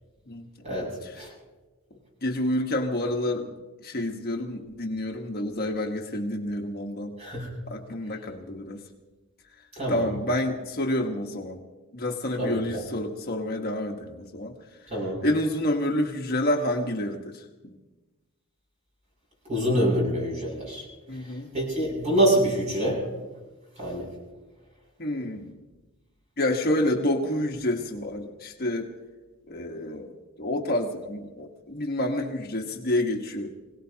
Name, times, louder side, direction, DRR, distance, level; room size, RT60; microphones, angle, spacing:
voice 1, 2.2-3.5 3.8-7.2 7.7-8.8 9.9-11.6 11.9-14.5 15.2-17.4 21.1-21.5 25.0-25.5 26.4-28.9 29.5-30.1 30.4-33.5, left 1 dB, 45° left, 2 dB, 1.3 m, -28 dB
voice 2, 7.2-7.5 9.8-10.1 12.4-12.8 14.9-15.2 19.5-20.8 21.5-23.0 23.8-24.1, right 1 dB, 30° right, -2 dB, 7.3 m, -25 dB
25.5 x 18.0 x 2.8 m, 1.2 s
head